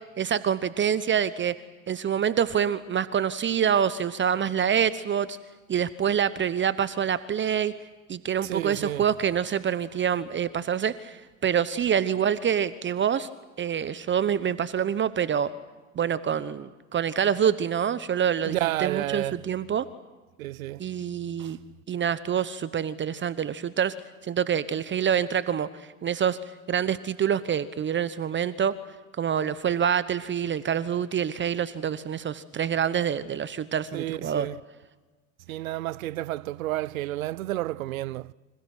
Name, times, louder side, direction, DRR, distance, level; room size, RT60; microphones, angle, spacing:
voice 1, 0.2-1.6 1.9-5.4 5.7-7.7 8.1-13.3 13.6-15.5 15.9-19.9 20.8-21.6 21.9-24.0 24.2-26.4 26.7-28.8 29.2-34.5, right 8 dB, 30° right, 1.0 m, -26 dB
voice 2, 8.4-9.0 18.4-19.4 20.4-20.8 21.4-21.5 33.9-34.6 35.5-38.3, right 15 dB, 80° right, 0.7 m, -31 dB
29.5 x 26.5 x 6.1 m
hypercardioid pair, 85°, 41 cm